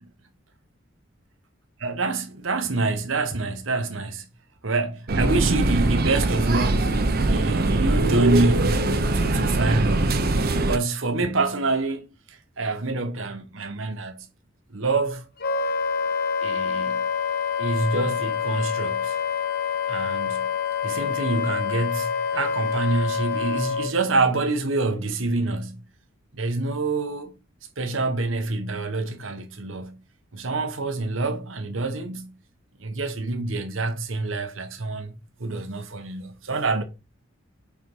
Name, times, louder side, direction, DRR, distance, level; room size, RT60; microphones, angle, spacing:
voice 1, 1.8-4.2 4.6-8.8 9.1-14.2 14.7-15.2 16.4-17.0 17.6-19.2 19.9-20.5 20.8-25.8 26.3-27.3 27.8-30.0 30.3-32.3 32.8-35.1 35.4-36.8, right 3 dB, 80° right, 1.2 m, -26 dB
sound 1, 5.1-10.8, right 2 dB, 50° right, 0.8 m, -22 dB
Wind instrument woodwind instrument, 15.4-23.9, left 6 dB, 50° left, 1.0 m, -26 dB
4.7 x 4.4 x 5.4 m
head